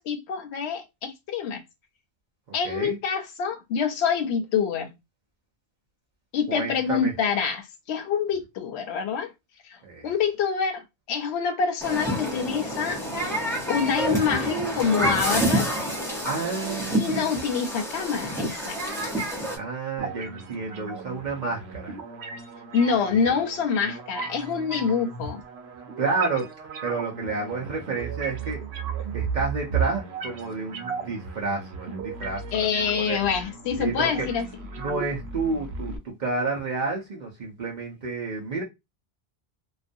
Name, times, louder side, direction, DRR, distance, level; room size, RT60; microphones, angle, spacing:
voice 1, 0.0-1.6 2.5-5.0 6.3-9.3 9.6-9.8 10.0-13.0 13.7-15.7 16.9-18.8 22.7-25.4 32.5-34.5, left 6 dB, 85° left, 0.8 m, -26 dB
voice 2, 2.6-3.0 6.5-7.1 9.8-10.1 16.2-17.3 19.5-22.0 26.0-26.5 26.8-28.6 29.1-33.2 33.8-34.3 34.8-38.6, right 3 dB, 50° right, 0.7 m, -30 dB
Human group actions, 11.8-19.6, right 1 dB, 5° left, 0.7 m, -28 dB
sound 1, 20.0-36.0, right 6 dB, 80° right, 0.8 m, -35 dB
2.4 x 2.2 x 2.5 m
omnidirectional pair, 1.1 m